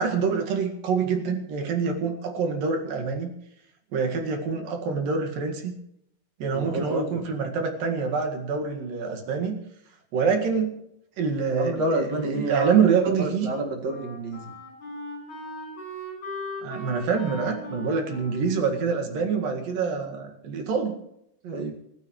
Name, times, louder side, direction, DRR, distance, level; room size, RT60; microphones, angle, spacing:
voice 1, 0.0-3.3 3.9-5.7 6.4-9.6 10.1-10.7 11.2-13.5 16.6-20.9, right 5 dB, 65° right, 3 dB, 3.5 m, -26 dB
voice 2, 6.5-7.0 11.5-12.9 13.2-14.4 21.4-21.7, right 1 dB, 50° right, 1 dB, 2.8 m, -29 dB
Wind instrument woodwind instrument, 13.8-20.2, left 1 dB, 55° left, 7.6 m, -40 dB
29.5 x 12.0 x 3.2 m, 0.78 s
omnidirectional pair, 4.4 m